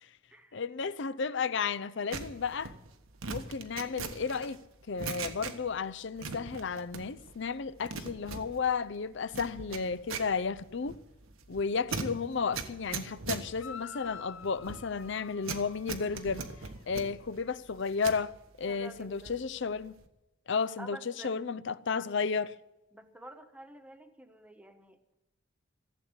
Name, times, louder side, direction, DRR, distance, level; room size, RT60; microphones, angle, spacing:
voice 1, 0.5-2.7 3.3-4.6 4.9-11.0 11.5-16.4 16.9-19.9 20.5-21.0 21.2-22.5, left 5 dB, 60° left, 0.6 m, -33 dB
sound 1, 2.1-5.9 6.2-7.3 7.6-18.3 18.7-19.5 19.8-20.1, right 4 dB, 90° right, 1.3 m, -41 dB
sound 2, 13.6-16.8, left 7 dB, 90° left, 1.0 m, -48 dB
voice 2, 18.7-19.5 20.8-21.3 22.9-25.1, right 1 dB, 5° right, 1.1 m, -49 dB
15.5 x 8.2 x 9.5 m
head